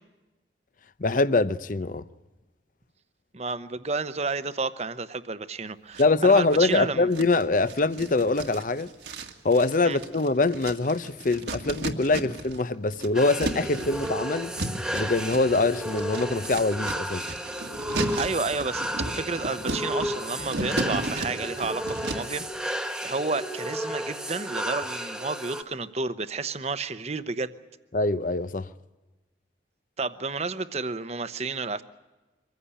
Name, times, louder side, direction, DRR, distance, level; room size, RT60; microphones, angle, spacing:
voice 1, 1.0-2.0 6.0-8.9 9.4-14.5 14.9-17.3 27.9-28.7, left 3 dB, 45° left, 0.7 m, -24 dB
voice 2, 3.3-7.1 9.8-10.0 18.1-27.5 30.0-31.8, right 3 dB, 35° right, 0.9 m, -31 dB
sound 1, 5.9-6.7 7.1-12.6 12.9-22.4, right 2 dB, 70° right, 1.9 m, -35 dB
sound 2, 13.1-25.6, equal, 5° right, 1.1 m, -33 dB
24.0 x 15.5 x 10.0 m
head